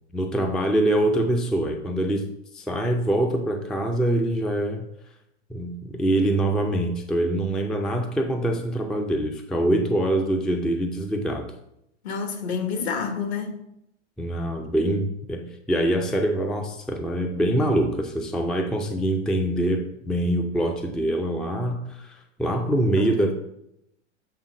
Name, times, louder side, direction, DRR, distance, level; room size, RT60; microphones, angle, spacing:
voice 1, 0.1-2.3 2.5-4.9 5.5-11.5 14.2-23.3, right 1 dB, ahead, 0.4 m, -24 dB
voice 2, 12.0-13.6 23.0-23.3, left 6 dB, 60° left, 1.4 m, -29 dB
7.5 x 3.6 x 4.9 m
hypercardioid pair, 95°, 36 cm